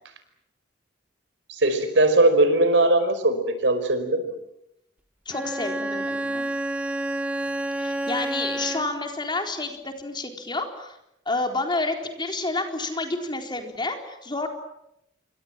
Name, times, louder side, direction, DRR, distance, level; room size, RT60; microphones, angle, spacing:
voice 1, 1.5-4.2, right 2 dB, 75° right, 10 dB, 5.1 m, -20 dB
voice 2, 5.3-6.5 7.8-11.0 11.3-14.5, left 2 dB, 25° left, 4 dB, 4.1 m, -29 dB
Bowed string instrument, 5.3-9.1, right 1 dB, 10° right, 1.6 m, -29 dB
28.5 x 24.5 x 7.6 m, 0.81 s
head